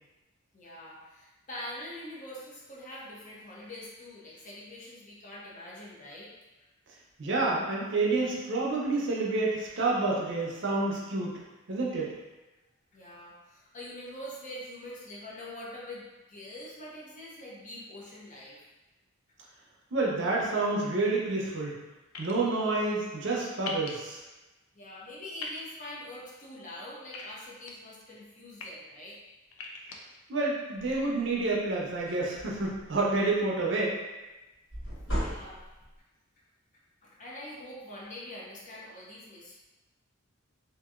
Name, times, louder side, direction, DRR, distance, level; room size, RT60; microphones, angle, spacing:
voice 1, 0.5-6.3 12.9-18.6 24.7-29.2 35.1-35.6 37.0-39.5, left 1 dB, 40° left, -6 dB, 0.7 m, -44 dB
voice 2, 7.2-11.3 11.7-12.1 19.9-21.8 22.2-24.2 30.3-34.0, right 3 dB, 60° right, -3 dB, 0.6 m, -28 dB
sound 1, 22.1-22.3 23.7-23.9 25.4-25.6 27.1-27.7 28.4-28.7 29.5-30.0, left 4 dB, 85° left, 0.4 m, -39 dB
sound 2, 30.8-31.1 31.5-31.7 31.9-33.0 34.7-35.9, equal, 65° left, 1.3 m, -36 dB
2.8 x 2.6 x 2.4 m, 1.1 s
head